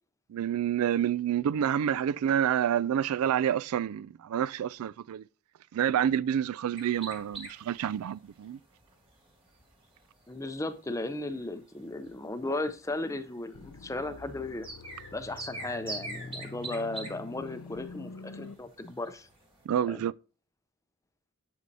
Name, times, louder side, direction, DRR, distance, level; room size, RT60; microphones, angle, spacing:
voice 1, 0.3-5.2 5.7-8.6 19.7-20.1, right 9 dB, 75° right, 0.3 m, -28 dB
sound 1, 6.8-19.6, right 2 dB, 25° right, 1.8 m, -46 dB
voice 2, 10.3-14.7 15.1-19.3 19.9-20.0, left 2 dB, 15° left, 0.5 m, -36 dB
sound 2, 13.5-18.5, left 3 dB, 90° left, 0.6 m, -46 dB
8.2 x 7.8 x 2.7 m
head